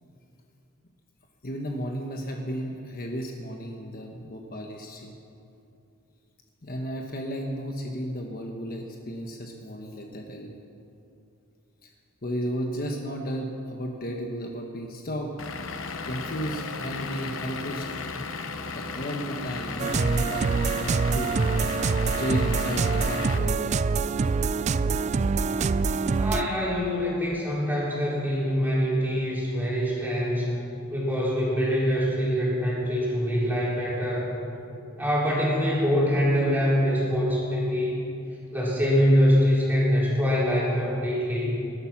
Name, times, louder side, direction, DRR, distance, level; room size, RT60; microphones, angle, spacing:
voice 1, 1.4-5.1 6.6-10.6 12.2-15.3 16.0-18.2 18.7-21.3 22.2-23.7, equal, 45° left, 2 dB, 1.2 m, -33 dB
Vehicle / Engine, 15.4-23.4, left 4 dB, 65° left, 1.0 m, -35 dB
sound 1, 19.8-26.5, right 4 dB, 30° right, 0.3 m, -25 dB
voice 2, 26.2-30.6 30.9-34.3 35.0-37.9 38.5-41.6, equal, 10° right, -7 dB, 4.5 m, -24 dB
20.5 x 12.0 x 6.0 m, 2.7 s
head